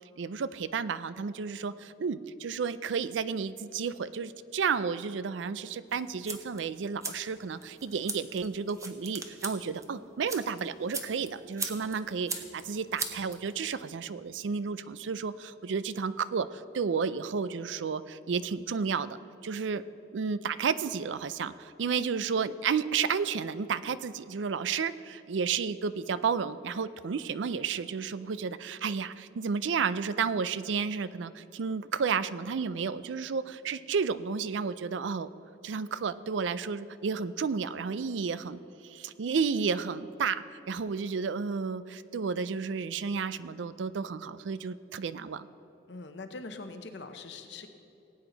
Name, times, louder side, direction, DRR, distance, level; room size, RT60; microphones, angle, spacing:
voice 1, 0.2-19.2 19.4-19.8 20.1-35.3 35.6-45.5, right 5 dB, 90° right, 15 dB, 0.4 m, -32 dB
sound 1, 5.9-13.9, right 3 dB, 20° right, 0.9 m, -41 dB
voice 2, 45.9-47.7, left 3 dB, 70° left, 7 dB, 0.9 m, -42 dB
18.0 x 8.8 x 4.0 m, 2.8 s
head